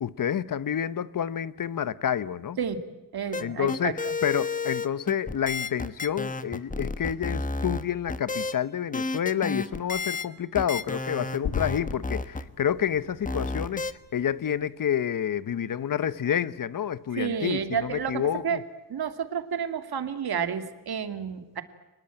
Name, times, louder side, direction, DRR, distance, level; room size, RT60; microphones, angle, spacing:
voice 1, 0.0-2.6 3.4-18.6, left 9 dB, 55° left, 0.9 m, -29 dB
voice 2, 3.1-3.9 17.1-18.6 18.9-21.6, right 7 dB, 70° right, 2.4 m, -30 dB
sound 1, 3.3-8.5 8.9-10.3 10.6-12.4 13.2-13.9, left 3 dB, 20° left, 1.2 m, -31 dB
sound 2, 10.7-14.9, left 6 dB, 80° left, 2.2 m, -39 dB
29.5 x 20.0 x 9.0 m
wide cardioid pair, 120°, 38 cm